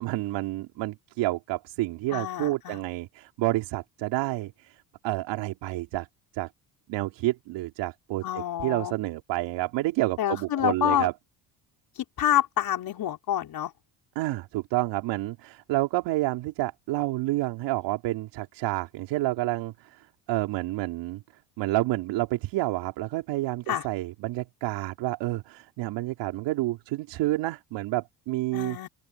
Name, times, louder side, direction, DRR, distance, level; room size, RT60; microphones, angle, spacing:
voice 1, 0.0-4.7 5.0-6.1 6.3-6.5 6.9-11.1 14.2-21.2 21.6-28.8, right 18 dB, 75° right, 4.1 m, -29 dB
voice 2, 2.1-2.8 8.2-8.9 10.2-11.1 12.0-13.7 23.7-23.8 28.5-28.9, left 11 dB, 55° left, 4.9 m, -27 dB
open air
cardioid pair, 105°, 43 cm